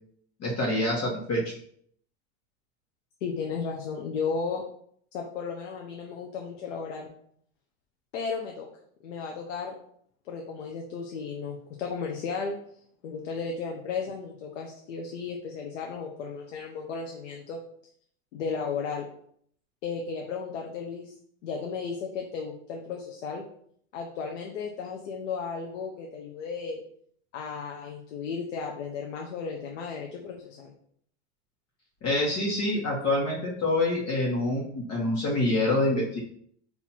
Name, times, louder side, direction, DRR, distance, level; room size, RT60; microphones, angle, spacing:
voice 1, 0.4-1.5 32.0-36.2, left 1 dB, 45° left, -3 dB, 1.3 m, -26 dB
voice 2, 3.2-4.6 5.1-7.1 8.1-8.7 9.0-9.7 10.3-12.6 13.0-17.6 18.3-19.1 19.8-21.1 21.4-23.4 23.9-26.8 27.3-30.7, left 5 dB, 85° left, 1 dB, 0.8 m, -34 dB
4.3 x 2.8 x 4.2 m, 0.64 s
supercardioid pair, 110°, 36 cm